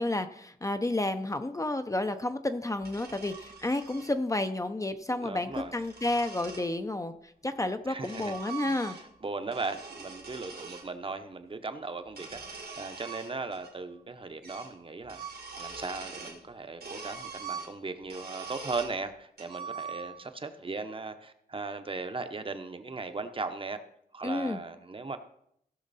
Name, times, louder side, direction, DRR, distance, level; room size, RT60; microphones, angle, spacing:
voice 1, 0.0-9.0 24.2-24.6, left 2 dB, 20° left, 8 dB, 0.5 m, -31 dB
sound 1, 2.8-4.1 5.3-6.7 7.6-9.2 9.5-10.9 12.0-13.7 14.0-14.1 14.4-14.8 15.0-16.4 16.8-19.0 19.4-20.3, right 5 dB, 85° right, 2.2 m, -43 dB
voice 2, 5.2-5.7 7.9-8.3 8.6-23.8 24.1-25.2, right 3 dB, 35° right, 9 dB, 0.8 m, -38 dB
16.0 x 6.4 x 4.1 m, 0.72 s
wide cardioid pair, 135°, 16 cm